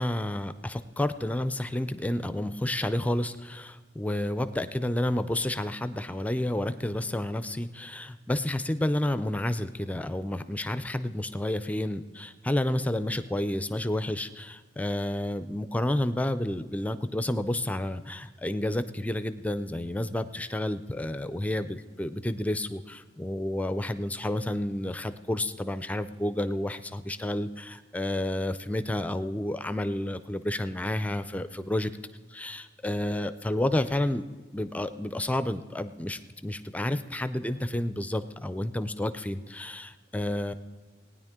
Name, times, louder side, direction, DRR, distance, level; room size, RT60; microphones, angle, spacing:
voice 1, 0.0-31.9 32.3-34.2 34.5-40.5, left 1 dB, 10° left, 12 dB, 0.4 m, -30 dB
18.5 x 9.9 x 3.6 m, 1.4 s
head